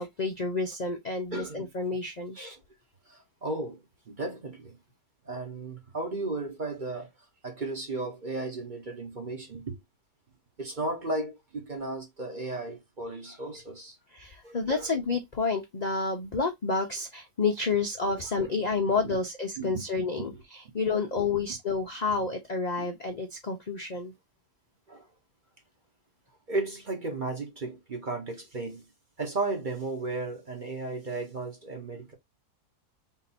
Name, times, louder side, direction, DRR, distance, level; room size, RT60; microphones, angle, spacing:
voice 1, 0.0-2.4 14.1-20.3 20.7-24.1, left 4 dB, 45° left, 0.5 m, -29 dB
voice 2, 1.3-1.7 2.3-2.6 3.1-3.8 4.1-4.8 5.2-7.1 7.4-9.8 10.6-14.0 14.4-14.9 18.4-19.2 19.6-19.8 20.1-20.4 22.8-22.9 24.9-25.1 26.5-28.8 29.2-32.1, right 2 dB, 35° right, 1.0 m, -35 dB
3.8 x 2.6 x 4.2 m
omnidirectional pair, 1.7 m